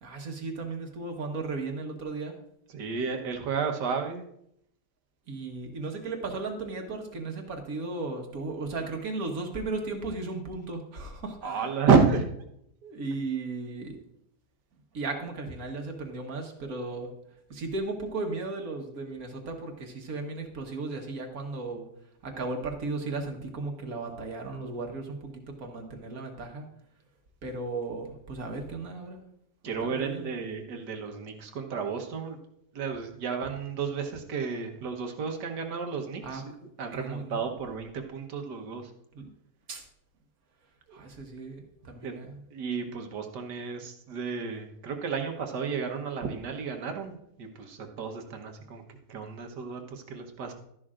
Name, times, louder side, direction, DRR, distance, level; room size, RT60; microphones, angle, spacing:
voice 1, 0.0-2.4 5.3-11.7 12.8-14.0 14.9-17.1 17.5-21.9 22.2-26.7 27.4-29.2 29.8-30.3 36.2-36.4 37.0-37.4 39.1-39.3 39.7-39.8 40.9-42.4, right 3 dB, 60° right, 3 dB, 1.7 m, -35 dB
voice 2, 2.7-4.2 11.4-12.3 29.6-32.4 32.7-36.4 36.8-38.9 40.9-41.0 42.0-42.2 42.5-50.5, right 5 dB, 75° right, 5 dB, 1.7 m, -31 dB
12.5 x 11.0 x 2.5 m, 0.75 s
omnidirectional pair, 1.8 m